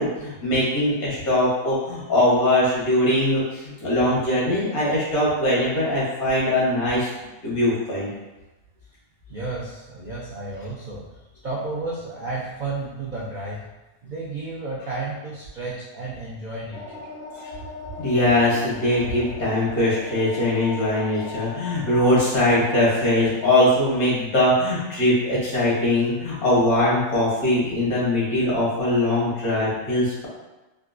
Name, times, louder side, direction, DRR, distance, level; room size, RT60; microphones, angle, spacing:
voice 1, 0.0-7.1 7.4-8.1 17.3-17.5 18.0-30.3, left 1 dB, 85° left, -7 dB, 1.7 m, -21 dB
voice 2, 9.3-13.6 14.0-17.1, right 2 dB, 90° right, -6 dB, 0.4 m, -32 dB
sound 1, 16.7-23.7, left 4 dB, 40° left, 1.7 m, -39 dB
3.6 x 2.3 x 2.4 m, 1.1 s
omnidirectional pair, 1.5 m